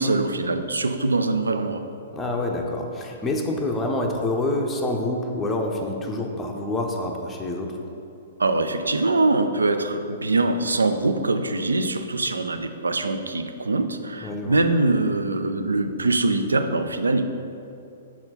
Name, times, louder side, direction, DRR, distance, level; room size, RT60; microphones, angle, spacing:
voice 1, 0.0-1.8 8.4-17.3, right 2 dB, 80° right, 8 dB, 0.4 m, -23 dB
voice 2, 2.1-7.8 14.2-14.6, left 2 dB, 15° left, 0 dB, 0.6 m, -27 dB
5.7 x 4.3 x 4.1 m, 2.7 s
figure-of-eight pair, 115°, 0 cm